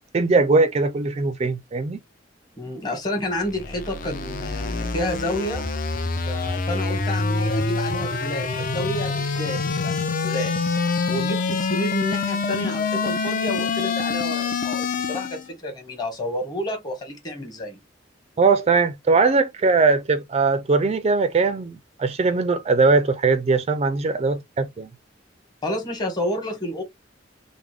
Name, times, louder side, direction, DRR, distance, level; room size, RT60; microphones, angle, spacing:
voice 1, 0.1-2.0 18.4-24.9, right 4 dB, 35° right, 0.4 m, -20 dB
voice 2, 2.6-5.7 6.2-10.5 11.1-17.8 25.6-26.8, left 1 dB, 20° left, 1.3 m, -30 dB
sound 1, 3.3-15.5, left 4 dB, 45° left, 0.6 m, -26 dB
3.5 x 2.0 x 3.1 m
head